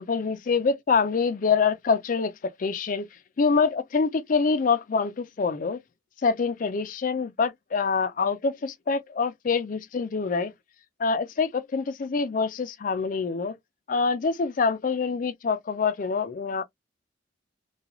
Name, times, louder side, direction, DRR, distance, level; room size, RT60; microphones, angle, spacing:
voice 1, 0.0-2.3 2.6-3.1 3.4-5.8 6.2-10.5 11.0-13.5 13.9-16.6, left 5 dB, 45° left, 0.4 m, -25 dB
2.4 x 2.3 x 2.9 m
head